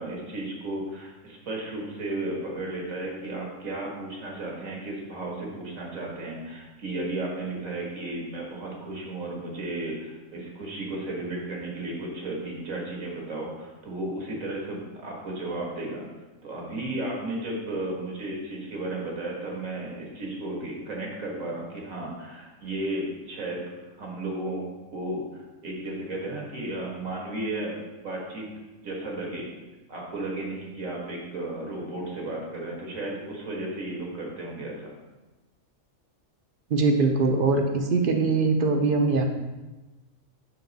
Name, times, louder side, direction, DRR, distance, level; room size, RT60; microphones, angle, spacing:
voice 1, 0.0-16.0 16.4-23.6 24.0-24.6 24.9-28.5 28.8-29.5 29.9-34.9, right 2 dB, 80° right, -2 dB, 1.9 m, -34 dB
voice 2, 36.7-39.2, right 3 dB, 55° right, 4 dB, 0.7 m, -22 dB
6.9 x 4.6 x 3.9 m, 1.1 s
omnidirectional pair, 1.4 m